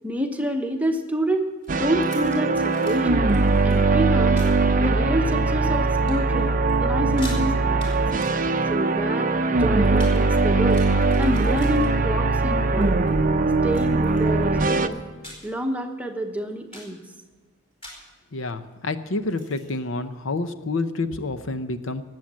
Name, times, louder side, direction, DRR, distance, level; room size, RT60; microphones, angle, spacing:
voice 1, 0.0-1.5 1.7-3.3 3.6-4.4 4.8-8.0 8.7-10.9 11.2-13.2 13.6-15.0 15.4-17.0, equal, 5° right, 4 dB, 0.9 m, -28 dB
sound 1, 1.6-3.0 3.3-3.8 4.4-4.6 5.2-5.8 6.0-6.4 6.7-6.8 7.0-7.4 7.8-8.0 8.2-10.2 10.5-12.4 12.7-13.1 13.7-14.5 14.9-15.6 16.0-16.1 16.5-17.0 17.8-18.1 19.2-19.7, left 1 dB, 25° left, 4.1 m, -44 dB
sound 2, 1.7-14.9, right 3 dB, 35° right, 0.6 m, -21 dB
voice 2, 18.3-22.0, left 3 dB, 60° left, 10 dB, 0.7 m, -28 dB
19.0 x 7.7 x 7.5 m, 1.4 s
head